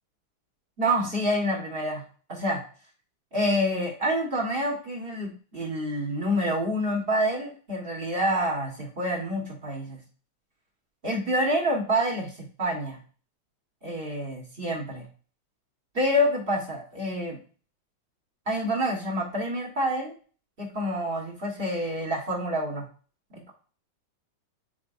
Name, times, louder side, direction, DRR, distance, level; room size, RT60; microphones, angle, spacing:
voice 1, 0.8-2.0 2.3-2.6 3.3-10.0 11.0-12.3 12.6-13.0 13.8-15.0 15.9-17.4 18.5-20.1 20.6-22.8 23.3-23.5, equal, 45° right, -1 dB, 0.7 m, -27 dB
9.6 x 4.6 x 2.6 m, 0.40 s
omnidirectional pair, 3.4 m